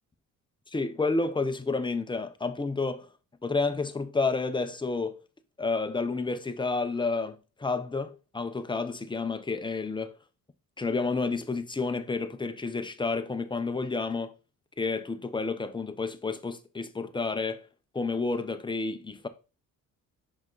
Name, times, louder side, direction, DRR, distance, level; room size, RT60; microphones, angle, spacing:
voice 1, 0.7-3.1 3.4-5.2 5.6-10.1 10.8-14.3 14.8-17.7 17.9-19.3, left 3 dB, 15° left, 0.8 m, -30 dB
5.8 x 5.3 x 3.9 m
cardioid pair, 95°, 33 cm